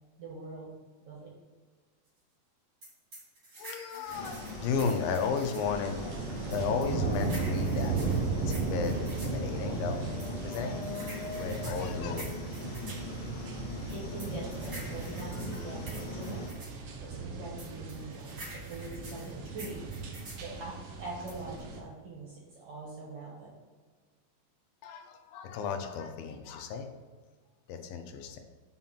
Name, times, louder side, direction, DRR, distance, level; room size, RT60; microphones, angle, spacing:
voice 1, 0.2-0.7 1.1-1.3 13.9-16.4 17.0-19.8 20.4-23.5, right 2 dB, 55° right, -3 dB, 1.8 m, -43 dB
sound 1, 2.8-5.7 6.5-9.4 10.2-13.0 13.9-16.8 17.6-20.5 21.3-21.6, right 1 dB, 30° right, 2.1 m, -47 dB
voice 2, 3.6-8.0 8.5-10.0 10.3-10.9 11.4-12.2 24.8-26.9 27.7-28.4, left 6 dB, 80° left, 6 dB, 2.4 m, -34 dB
sound 2, 4.1-16.5, left 3 dB, 65° left, 1.8 m, -42 dB
sound 3, 4.1-21.8, right 4 dB, 80° right, 1.4 m, -36 dB
5.9 x 5.1 x 5.7 m, 1.5 s
omnidirectional pair, 4.2 m